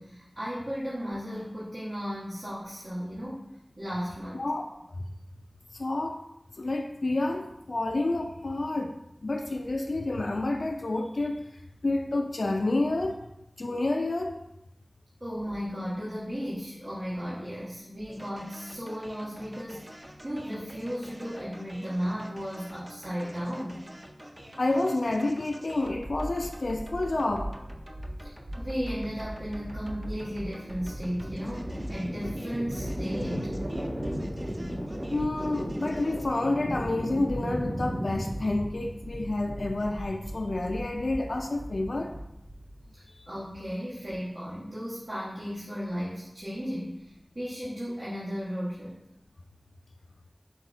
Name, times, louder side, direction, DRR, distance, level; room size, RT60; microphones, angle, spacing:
voice 1, 0.0-3.4 3.8-4.4 15.2-23.8 28.6-33.5 42.9-49.0, equal, 70° right, -11 dB, 1.4 m, -35 dB
voice 2, 5.7-6.2 6.6-11.5 11.8-13.2 13.6-14.4 24.6-27.5 35.1-42.2 43.1-43.3, left 2 dB, 80° left, 3 dB, 0.3 m, -29 dB
sound 1, 18.1-36.4, right 1 dB, 30° right, 0.5 m, -49 dB
sound 2, 25.8-42.8, equal, 50° right, 1.2 m, -36 dB
5.8 x 2.2 x 3.9 m, 0.86 s
wide cardioid pair, 55°, 0 cm